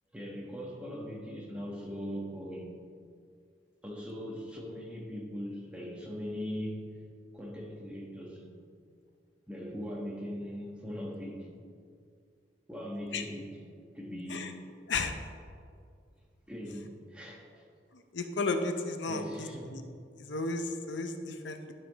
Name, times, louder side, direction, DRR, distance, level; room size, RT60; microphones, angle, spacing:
voice 1, 0.1-2.8 3.8-6.9 7.3-8.5 9.5-11.5 12.7-14.6 16.2-17.7 19.1-19.8, equal, 5° right, -2 dB, 1.3 m, -40 dB
voice 2, 18.1-19.8 20.2-21.7, left 3 dB, 85° left, 6 dB, 0.7 m, -33 dB
12.0 x 5.8 x 4.1 m, 2.3 s
head